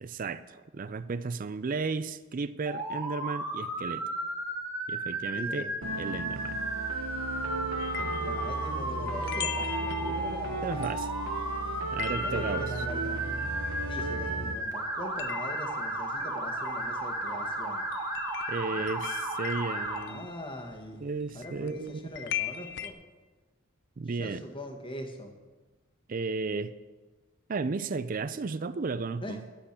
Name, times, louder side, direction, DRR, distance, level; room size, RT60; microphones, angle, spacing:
voice 1, 0.0-4.0 4.9-5.7 6.0-6.6 10.6-11.1 11.9-12.8 18.5-20.3 21.0-22.1 24.0-24.4 26.1-26.7 27.5-29.4, right 4 dB, 40° right, 0.4 m, -34 dB
Motor vehicle (road) / Siren, 2.7-20.0, right 1 dB, 15° right, 2.0 m, -34 dB
voice 2, 5.3-5.7 8.2-10.8 12.2-13.4 13.8-17.8 18.7-18.9 20.1-21.1 21.3-23.0 24.1-25.3 29.2-29.4, equal, 25° left, 1.6 m, -42 dB
sound 1, 5.8-14.6, right 2 dB, 85° right, 1.0 m, -36 dB
sound 2, 7.8-14.4 14.7-22.9, left 10 dB, 55° left, 0.6 m, -41 dB
11.5 x 7.6 x 8.2 m
head